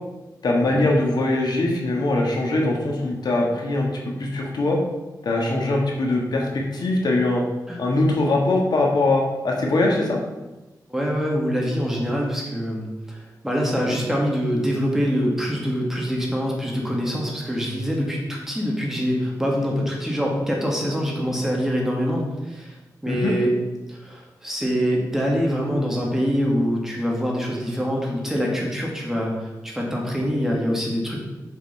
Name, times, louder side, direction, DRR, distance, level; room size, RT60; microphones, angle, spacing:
voice 1, 0.4-4.8 5.2-7.4 7.8-10.2 23.1-23.3, left 2 dB, 75° left, -1 dB, 1.6 m, -22 dB
voice 2, 10.9-22.8 23.0-23.5 23.9-31.2, equal, 5° right, -2 dB, 2.0 m, -24 dB
7.0 x 5.3 x 5.3 m, 1.1 s
wide cardioid pair, 110°, 7 cm